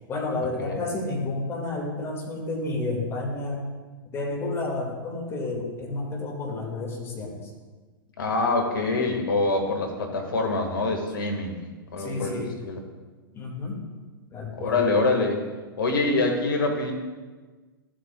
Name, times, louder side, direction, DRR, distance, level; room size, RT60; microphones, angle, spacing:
voice 1, 0.1-3.6 4.1-7.5 12.0-12.6 13.3-13.8 14.3-14.9, left 2 dB, 20° left, -1 dB, 2.0 m, -31 dB
voice 2, 8.2-11.6 11.9-12.8 14.6-15.4 15.8-16.9, left 3 dB, 65° left, 3 dB, 1.6 m, -25 dB
13.5 x 7.6 x 2.3 m, 1.3 s
figure-of-eight pair, 100°, 12 cm